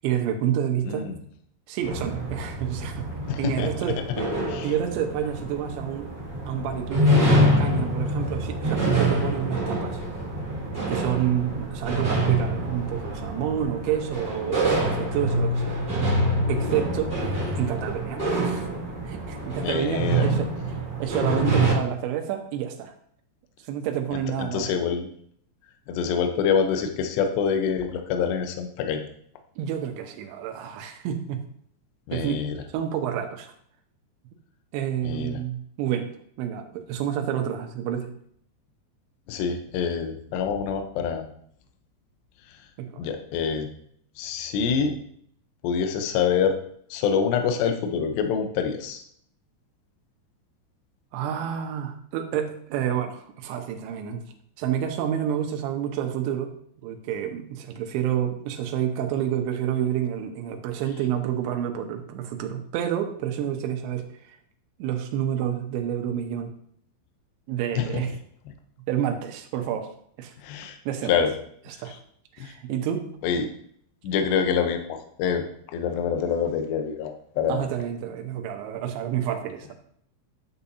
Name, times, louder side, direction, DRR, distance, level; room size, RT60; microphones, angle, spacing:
voice 1, 0.0-1.1 1.7-3.1 3.4-4.0 4.6-6.1 6.4-10.0 10.9-15.8 16.5-17.2 17.6-18.7 19.0-20.5 21.0-22.9 23.7-24.7 29.6-31.4 32.1-32.4 32.7-33.5 34.7-36.1 36.4-38.1 42.8-43.1 51.1-54.2 54.6-56.5 56.8-64.4 64.8-66.5 67.5-68.1 68.9-69.9 70.2-70.3 70.9-71.1 71.7-72.0 72.3-73.1 77.5-79.8, right 10 dB, 85° right, 4 dB, 3.1 m, -29 dB
sound 1, 1.8-21.7, right 1 dB, 15° right, 2.6 m, -26 dB
voice 2, 3.3-3.7 4.5-4.7 19.6-20.3 24.5-25.1 25.9-29.1 32.1-32.6 35.0-35.4 39.3-41.3 43.0-43.7 44.2-45.0 45.6-46.6 46.9-49.0 67.7-67.9 70.4-70.8 71.1-71.3 72.4-72.5 73.2-73.5 74.0-75.4 75.7-77.7, left 6 dB, 75° left, 6 dB, 2.9 m, -26 dB
9.9 x 7.0 x 2.7 m, 0.65 s
omnidirectional pair, 5.2 m